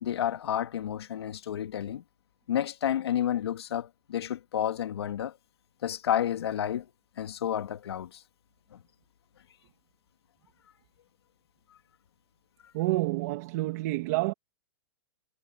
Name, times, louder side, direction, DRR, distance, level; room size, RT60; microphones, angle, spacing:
voice 1, 0.0-2.0 2.5-5.4 5.8-6.9 7.2-8.2 8.7-8.8 12.6-12.7, left 10 dB, 70° left, 2.4 m, -30 dB
voice 2, 12.7-14.3, right 19 dB, 35° right, 2.6 m, -28 dB
hypercardioid pair, 170°, 14 cm